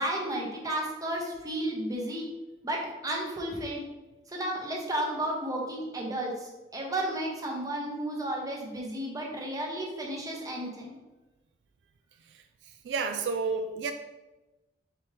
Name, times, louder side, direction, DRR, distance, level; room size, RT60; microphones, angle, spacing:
voice 1, 0.0-2.3 2.6-3.8 4.3-10.9, right 1 dB, 20° right, -1 dB, 0.8 m, -33 dB
voice 2, 12.8-13.9, right 4 dB, 80° right, 6 dB, 0.3 m, -30 dB
4.3 x 3.4 x 3.2 m, 1.1 s
head